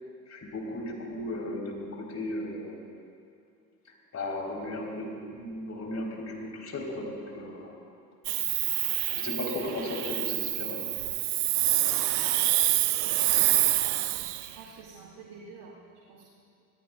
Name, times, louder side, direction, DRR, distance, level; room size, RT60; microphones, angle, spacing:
voice 1, 0.3-2.8 4.1-7.8 9.1-10.9, left 1 dB, 35° left, -1 dB, 4.3 m, -35 dB
Hiss, 8.2-14.5, right 16 dB, 75° right, 0.7 m, -27 dB
voice 2, 13.0-13.4 14.3-16.3, right 4 dB, 50° right, -5 dB, 2.8 m, -49 dB
25.5 x 18.0 x 2.5 m, 2.4 s
figure-of-eight pair, 55°, 46 cm